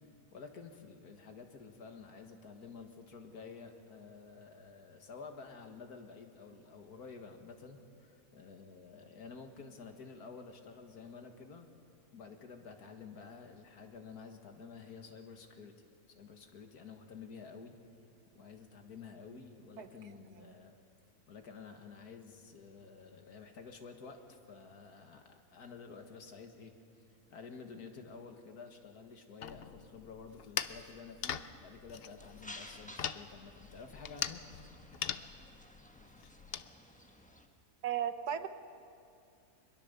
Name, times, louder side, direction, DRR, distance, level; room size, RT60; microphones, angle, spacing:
voice 1, 0.3-11.7 12.1-15.8 16.1-17.8 18.3-20.8 21.3-26.7 27.3-34.4, left 5 dB, 80° left, 5 dB, 2.1 m, -51 dB
sound 1, 29.4-36.7, left 8 dB, 55° left, 0.7 m, -42 dB
sound 2, 32.2-37.5, left 1 dB, 5° left, 1.2 m, -54 dB
voice 2, 37.8-38.5, right 9 dB, 85° right, 10 dB, 1.5 m, -35 dB
23.5 x 22.0 x 6.8 m, 2.5 s
omnidirectional pair, 1.6 m